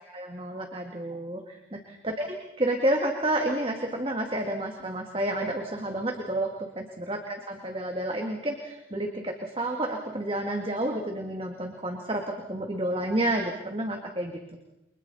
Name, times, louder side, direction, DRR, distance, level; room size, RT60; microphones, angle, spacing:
voice 1, 0.0-6.5 6.8-12.2 12.5-14.4, right 1 dB, 30° right, 2 dB, 1.9 m, -30 dB
29.5 x 24.5 x 4.1 m, 0.92 s
head